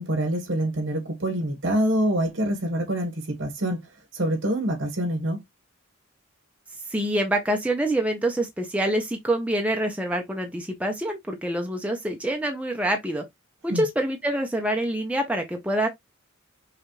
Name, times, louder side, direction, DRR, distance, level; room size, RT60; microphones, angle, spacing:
voice 1, 0.0-3.8 4.1-5.4 13.7-13.8, right 1 dB, 65° right, 1.7 m, -26 dB
voice 2, 6.9-13.2 13.6-15.9, right 1 dB, 5° right, 0.7 m, -26 dB
5.7 x 2.5 x 3.2 m
head